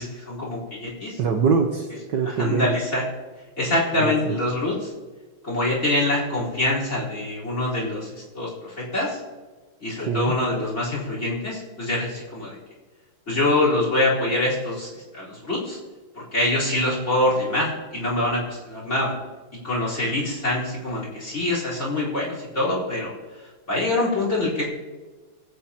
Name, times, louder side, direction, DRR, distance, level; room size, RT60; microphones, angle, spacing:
voice 1, 0.0-1.2 2.2-3.0 3.6-4.9 5.4-9.2 9.8-12.6 13.3-15.8 16.1-19.1 19.6-23.1 23.7-24.6, left 1 dB, 30° left, -5 dB, 4.5 m, -25 dB
voice 2, 1.2-2.8 4.0-4.4 10.1-10.3, right 5 dB, 60° right, 3 dB, 1.4 m, -23 dB
22.5 x 8.5 x 2.9 m, 1.3 s
omnidirectional pair, 2.4 m